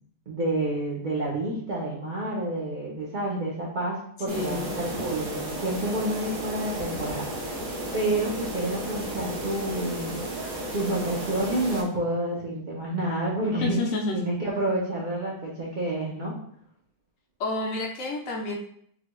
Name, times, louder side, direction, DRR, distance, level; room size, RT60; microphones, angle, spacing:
voice 1, 0.3-7.6 7.9-10.2 10.7-13.8 14.1-16.4, right 1 dB, 65° right, -4 dB, 0.4 m, -29 dB
voice 2, 4.3-4.8 13.6-14.2 17.4-18.6, left 3 dB, 70° left, 1 dB, 0.9 m, -29 dB
sound 1, 4.3-11.8, right 1 dB, 85° right, 1.3 m, -33 dB
3.9 x 2.2 x 2.9 m, 0.65 s
omnidirectional pair, 1.6 m